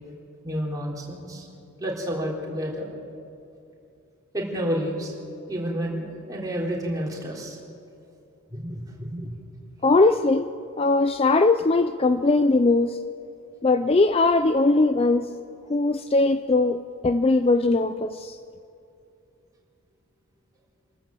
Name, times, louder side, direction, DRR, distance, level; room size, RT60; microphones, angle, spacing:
voice 1, 0.4-1.5 1.8-2.9 4.3-5.1 5.5-7.6 8.5-9.4, equal, 15° right, -3 dB, 3.5 m, -30 dB
voice 2, 9.8-10.5 10.8-13.0 13.6-15.3 15.7-18.4, left 3 dB, 25° left, 10 dB, 0.4 m, -20 dB
27.0 x 13.5 x 7.7 m, 2.6 s
head